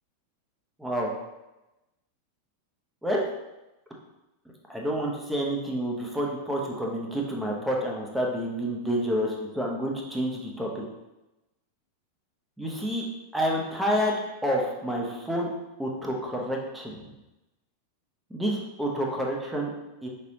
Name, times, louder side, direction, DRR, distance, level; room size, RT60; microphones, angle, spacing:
voice 1, 0.8-1.1 3.0-3.2 4.7-10.8 12.6-13.1 13.3-14.1 14.4-15.5 15.8-17.0 18.3-19.7 20.0-20.1, equal, 5° right, -2 dB, 0.9 m, -29 dB
4.9 x 3.3 x 2.9 m, 0.98 s
figure-of-eight pair, 90°, 0 cm